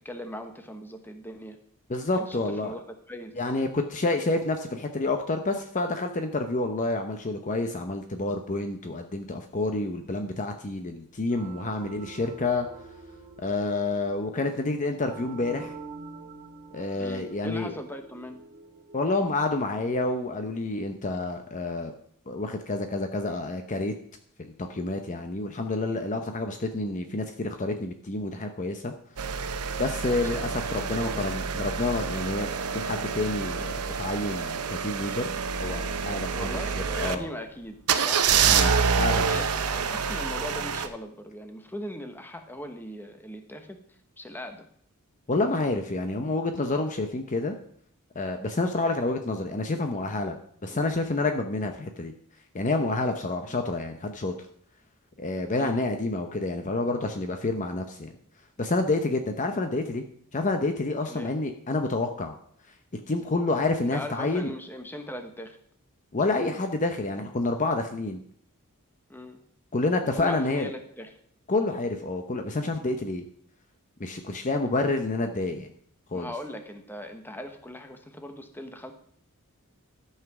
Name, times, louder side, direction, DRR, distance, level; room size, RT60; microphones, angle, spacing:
voice 1, 0.0-1.6 2.3-2.8 3.1-3.3 17.0-18.4 30.0-30.3 30.9-31.3 36.3-37.8 38.0-38.3 39.2-43.8 44.2-44.7 50.7-50.9 53.5-53.7 55.5-55.8 61.1-61.3 63.8-65.6 69.1-69.4 70.2-71.2 76.1-78.9, equal, 10° left, 6 dB, 1.1 m, -39 dB
voice 2, 1.9-2.7 3.4-12.7 13.4-15.7 16.7-17.7 18.9-21.9 22.3-23.9 24.4-28.9 29.8-36.5 37.0-37.3 38.5-39.4 45.3-47.5 48.1-50.4 50.6-52.1 52.5-54.3 55.2-58.1 58.6-60.0 60.3-62.4 63.1-64.5 66.1-68.2 69.7-70.7 71.5-73.2 74.0-75.7 76.1-76.3, left 2 dB, 35° left, 6 dB, 0.7 m, -28 dB
sound 1, 11.3-21.7, right 4 dB, 45° right, 1.7 m, -47 dB
sound 2, 29.2-37.1 37.9-40.9, right 6 dB, 80° right, 0.8 m, -27 dB
13.0 x 5.8 x 6.0 m, 0.63 s
head